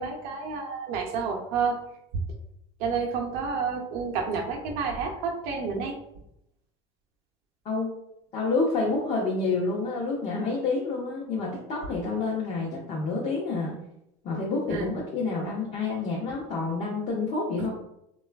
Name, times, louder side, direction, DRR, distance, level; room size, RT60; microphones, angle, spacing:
voice 1, 0.0-1.8 2.8-6.0 14.7-14.9, right 5 dB, 65° right, 1 dB, 0.5 m, -30 dB
voice 2, 8.3-13.7 14.2-17.7, left 3 dB, 40° left, -5 dB, 0.7 m, -28 dB
3.1 x 2.3 x 2.2 m, 0.78 s
supercardioid pair, 115°, 15 cm